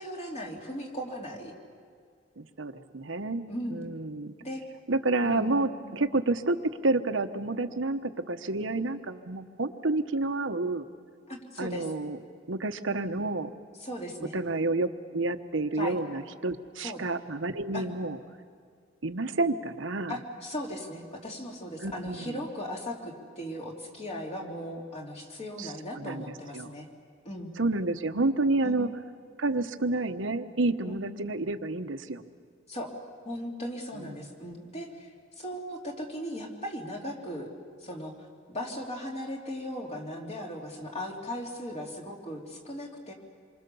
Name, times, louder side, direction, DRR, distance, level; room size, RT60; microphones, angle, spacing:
voice 1, 0.0-1.5 3.5-3.9 4.4-4.6 5.2-6.2 11.3-11.9 13.8-14.3 15.8-16.0 16.8-17.0 17.7-17.8 20.1-26.9 27.2-27.5 28.6-28.8 30.8-31.1 32.7-32.9 33.2-37.5 37.8-38.1 38.5-43.1, equal, 35° left, 0 dB, 3.3 m, -38 dB
voice 2, 2.4-3.4 3.7-4.3 4.9-10.8 11.6-12.2 12.5-13.5 14.3-18.2 19.0-20.2 21.8-22.4 25.6-26.2 26.5-26.7 27.6-28.9 29.4-32.2 34.0-34.1, right 2 dB, 80° right, 9 dB, 1.1 m, -29 dB
27.5 x 24.0 x 7.0 m, 2.1 s
head